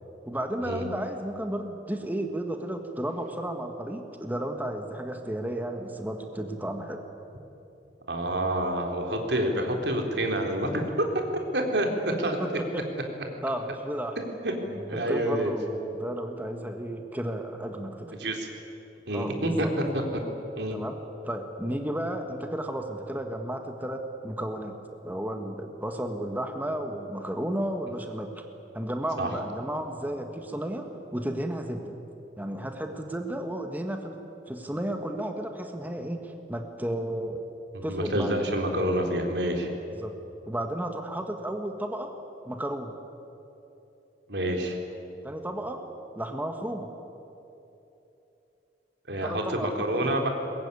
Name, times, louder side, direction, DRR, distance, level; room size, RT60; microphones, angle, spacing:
voice 1, 0.2-7.0 12.1-12.8 13.4-14.2 14.7-18.2 19.1-19.7 20.7-21.0 21.2-24.8 25.0-28.4 28.7-32.0 32.4-34.2 34.5-37.5 37.8-38.3 40.0-40.2 40.4-42.1 42.4-42.9 45.2-45.8 46.1-46.9 49.2-50.1, right 1 dB, 10° right, 4 dB, 1.5 m, -33 dB
voice 2, 8.1-11.2 11.5-12.4 14.4-14.5 14.9-15.6 18.2-18.5 19.1-19.8 20.1-20.2 20.6-20.8 29.2-29.3 37.7-39.7 44.3-44.8 49.1-50.3, right 1 dB, 75° right, 3 dB, 3.7 m, -28 dB
22.5 x 21.0 x 9.7 m, 3.0 s
head